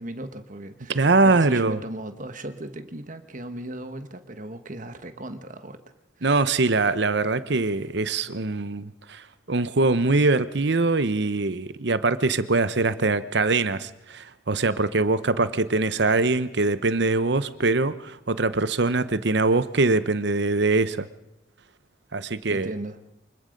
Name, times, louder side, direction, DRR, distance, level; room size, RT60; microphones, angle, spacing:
voice 1, 0.0-5.8 6.2-6.4 22.5-23.0, right 1 dB, 40° right, 1.4 m, -37 dB
voice 2, 0.9-1.8 6.2-9.2 9.5-21.1 22.1-22.7, right 3 dB, 60° right, 0.9 m, -23 dB
25.0 x 21.0 x 5.3 m
head